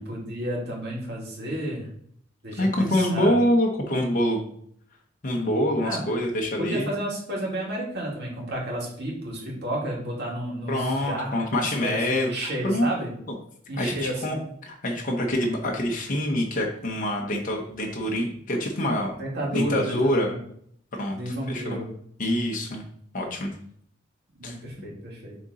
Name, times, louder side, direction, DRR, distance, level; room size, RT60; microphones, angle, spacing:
voice 1, 0.0-1.9 2.4-3.3 5.8-6.0 6.6-13.1 13.7-14.5 19.2-20.4 21.1-21.9 24.3-25.4, right 1 dB, 55° right, -3 dB, 2.2 m, -32 dB
voice 2, 2.6-4.4 5.2-6.9 10.7-12.9 13.3-13.4 13.8-14.4 14.6-19.1 19.5-20.3 20.9-21.8 22.2-22.8 23.1-23.5 24.4-24.6, left 1 dB, 40° left, 0 dB, 1.0 m, -25 dB
7.1 x 3.7 x 4.1 m, 0.65 s
head